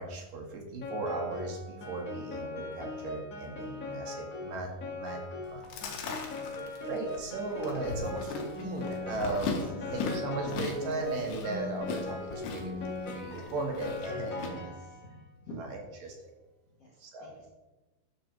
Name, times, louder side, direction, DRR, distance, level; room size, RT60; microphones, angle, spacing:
voice 1, 0.0-5.6 6.4-14.7 15.6-16.2 17.0-17.4, right 3 dB, 65° right, 1 dB, 2.7 m, -37 dB
Piano, 0.8-15.2, left 3 dB, 40° left, 1.2 m, -40 dB
Chewing mastication, 5.4-14.5, left 4 dB, 85° left, 3.5 m, -39 dB
voice 2, 14.5-15.6 16.8-17.5, right 1 dB, 55° left, -4 dB, 1.7 m, -49 dB
12.0 x 6.5 x 4.5 m, 1.1 s
omnidirectional pair, 4.7 m